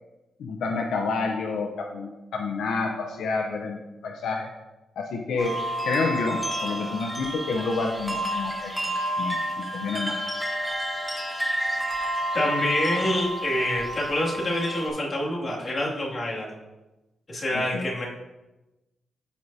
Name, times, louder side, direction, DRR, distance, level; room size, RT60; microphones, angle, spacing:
voice 1, 0.4-4.5 5.0-10.3 17.5-17.9, left 4 dB, 85° left, 1 dB, 0.7 m, -29 dB
sound 1, 5.4-14.9, right 1 dB, 10° right, 1.6 m, -30 dB
voice 2, 12.3-16.6 17.3-18.1, left 1 dB, 35° left, -5 dB, 2.3 m, -26 dB
13.5 x 4.7 x 2.8 m, 1.0 s
cardioid pair, 95°, 0 cm